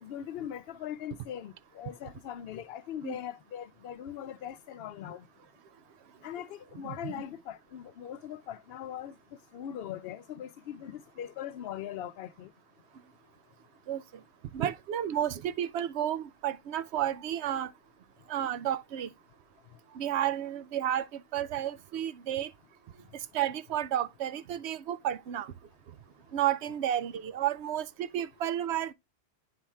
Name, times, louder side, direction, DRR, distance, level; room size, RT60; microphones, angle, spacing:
voice 1, 0.0-5.3 6.2-9.2 9.5-12.5, left 10 dB, 70° left, 0.8 m, -40 dB
voice 2, 6.8-7.2 13.9-14.0 14.5-17.7 18.3-19.1 19.9-22.5 23.3-25.5 26.3-28.9, right 11 dB, 85° right, 0.9 m, -32 dB
9.2 x 4.3 x 3.4 m
omnidirectional pair, 1.1 m